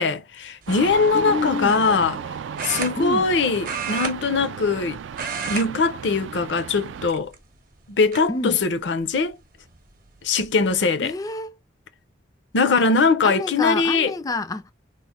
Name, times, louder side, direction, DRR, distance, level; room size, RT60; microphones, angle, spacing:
voice 1, 0.0-2.2 2.6-5.0 5.5-7.3 7.9-9.4 10.2-11.1 12.5-14.1, left 4 dB, 65° left, 0.6 m, -21 dB
sound 1, 0.6-0.9 2.6-3.3 3.6-4.8 5.1-5.7 6.0-6.2 7.0-7.6 8.1-8.2 9.7-9.8 10.1-10.5, right 6 dB, 45° right, 0.7 m, -31 dB
sound 2, 0.7-7.1, right 7 dB, 75° right, 0.3 m, -34 dB
voice 2, 1.1-1.8 3.0-3.3 8.3-8.6 11.0-11.6 12.7-12.8 13.2-14.7, left 3 dB, 20° left, 0.3 m, -28 dB
3.1 x 2.1 x 4.2 m
head